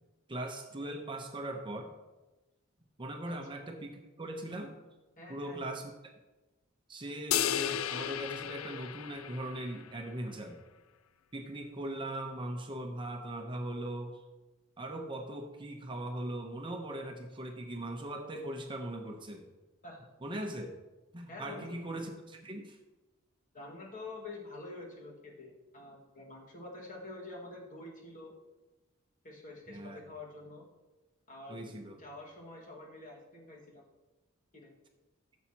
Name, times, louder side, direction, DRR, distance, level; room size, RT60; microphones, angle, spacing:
voice 1, 0.3-1.9 3.0-4.8 5.3-5.9 6.9-10.6 11.3-14.2 14.8-19.5 20.2-20.8 21.1-22.8 29.7-30.0 31.5-32.0, right 1 dB, 25° right, 3 dB, 0.8 m, -40 dB
voice 2, 5.2-5.8 19.8-20.1 21.3-21.8 23.5-28.3 29.2-30.7 31.3-33.8 34.5-34.7, left 2 dB, 40° left, -1 dB, 1.9 m, -47 dB
sound 1, 7.3-9.9, left 10 dB, 85° left, 0.4 m, -34 dB
14.0 x 7.1 x 2.9 m, 1.1 s
head